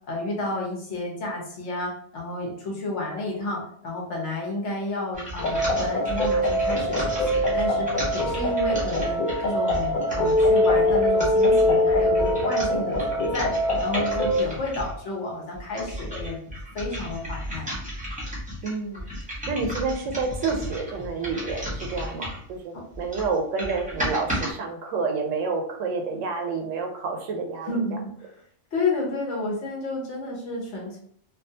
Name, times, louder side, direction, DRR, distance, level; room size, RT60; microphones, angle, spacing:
voice 1, 0.1-13.5 13.8-16.4 16.7-17.7 22.7-22.8 27.6-28.3 28.7-31.0, left 2 dB, 70° left, -2 dB, 1.1 m, -31 dB
sound 1, 5.1-15.0 15.5-22.5 22.9-24.5, equal, 10° right, 0.7 m, -34 dB
sound 2, 5.4-14.4, left 1 dB, 50° left, 0.6 m, -23 dB
voice 2, 18.6-19.1 19.5-27.8, right 4 dB, 80° right, 3 dB, 0.9 m, -29 dB
2.5 x 2.3 x 2.7 m, 0.63 s
omnidirectional pair, 1.3 m